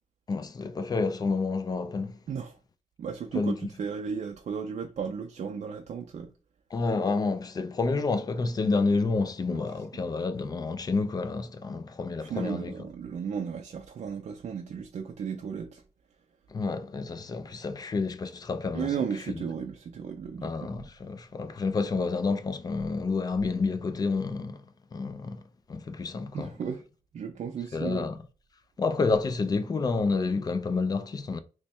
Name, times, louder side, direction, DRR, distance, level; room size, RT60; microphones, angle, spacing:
voice 1, 0.3-2.2 3.3-3.6 6.7-12.9 16.5-19.0 19.3-19.4 20.4-24.6 24.9-25.4 25.7-26.5 27.7-28.2 28.8-31.4, left 4 dB, 30° left, 0.3 m, -29 dB
voice 2, 3.0-6.3 9.5-9.6 12.2-15.8 18.7-20.8 26.3-26.8 27.1-28.1, right 6 dB, 55° right, 0.4 m, -34 dB
3.0 x 2.2 x 4.2 m
wide cardioid pair, 170°, 14 cm